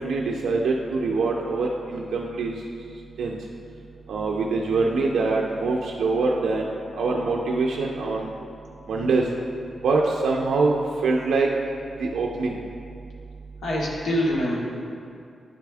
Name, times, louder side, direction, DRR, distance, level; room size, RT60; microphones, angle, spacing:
voice 1, 0.0-2.5 3.2-3.4 4.1-6.7 7.0-8.3 8.9-9.3 9.8-11.5 12.0-12.6, right 3 dB, 90° right, -1 dB, 0.4 m, -24 dB
voice 2, 13.6-14.6, equal, 80° left, -4 dB, 1.3 m, -24 dB
9.8 x 3.4 x 3.4 m, 2.5 s
cardioid pair, 105°, 0 cm